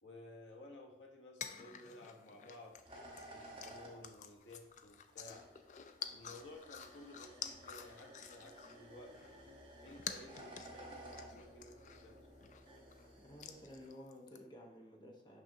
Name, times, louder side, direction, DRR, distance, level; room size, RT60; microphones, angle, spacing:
voice 1, 0.0-2.8 3.3-5.5 6.1-9.4 9.8-12.3, left 1 dB, 90° left, 0 dB, 1.1 m, -55 dB
sound 1, 1.4-8.9 9.1-13.1 13.4-14.4, left 7 dB, 40° left, 0.3 m, -50 dB
sound 2, 2.7-13.9, right 1 dB, 30° right, 1.1 m, -56 dB
voice 2, 13.2-15.4, equal, 25° left, 0 dB, 0.9 m, -54 dB
6.2 x 5.8 x 2.7 m, 0.93 s
head